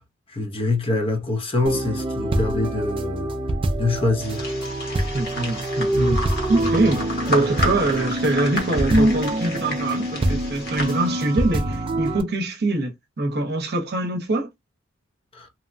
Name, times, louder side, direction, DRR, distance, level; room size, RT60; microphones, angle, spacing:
voice 1, 0.3-3.3 3.7-4.5 15.3-15.5, left 2 dB, 25° left, 0.6 m, -24 dB
sound 1, 1.7-12.2, right 1 dB, 25° right, 0.4 m, -25 dB
sound 2, 4.2-11.5, left 1 dB, 50° left, 1.2 m, -32 dB
voice 2, 5.1-14.5, right 2 dB, 50° right, 0.8 m, -24 dB
2.9 x 2.1 x 2.5 m
head